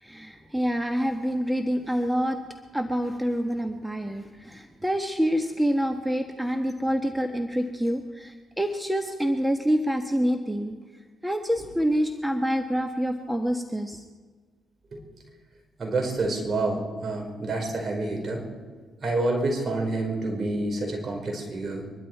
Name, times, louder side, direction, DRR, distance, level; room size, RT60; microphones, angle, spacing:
voice 1, 0.0-2.4 2.7-10.7 11.2-14.0, equal, 5° right, 6 dB, 1.4 m, -27 dB
voice 2, 15.8-18.4 19.0-21.9, right 2 dB, 50° right, 1 dB, 4.9 m, -28 dB
24.0 x 12.0 x 4.7 m, 1.4 s
hypercardioid pair, 45°, 0 cm